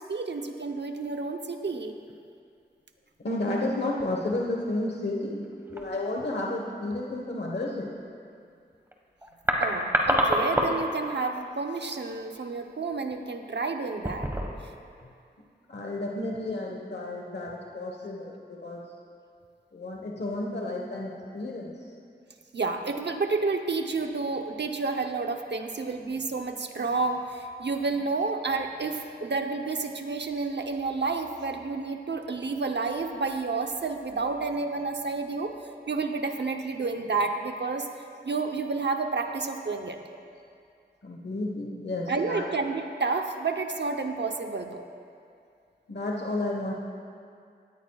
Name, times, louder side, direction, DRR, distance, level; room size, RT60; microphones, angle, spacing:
voice 1, 0.1-1.9 9.6-14.3 22.5-35.5 35.9-37.9 38.2-40.0 42.1-44.8, right 4 dB, 80° right, 4 dB, 0.9 m, -30 dB
voice 2, 3.2-7.9 15.7-18.9 19.7-21.8 41.0-42.5 45.9-46.7, left 2 dB, 70° left, -2 dB, 1.3 m, -32 dB
sound 1, 4.0-4.3 4.6-4.7 5.4-5.9 8.9-9.0 9.2-11.0 11.2-11.4 12.1-12.4 12.9-13.1 13.9-14.7 15.0-15.1, equal, 15° right, 1.5 m, -27 dB
18.5 x 13.5 x 2.4 m, 2.4 s
wide cardioid pair, 50°, 18 cm